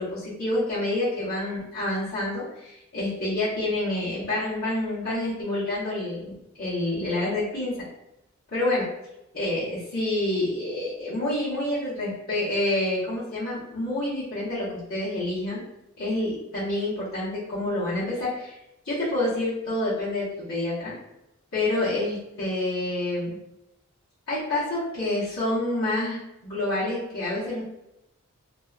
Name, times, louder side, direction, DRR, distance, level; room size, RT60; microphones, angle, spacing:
voice 1, 0.0-7.9 8.5-8.9 9.3-15.6 16.0-18.6 18.8-20.9 21.5-23.4 24.3-26.2 26.4-27.7, left 1 dB, 75° left, -13 dB, 1.1 m, -28 dB
2.6 x 2.2 x 2.4 m, 0.88 s
head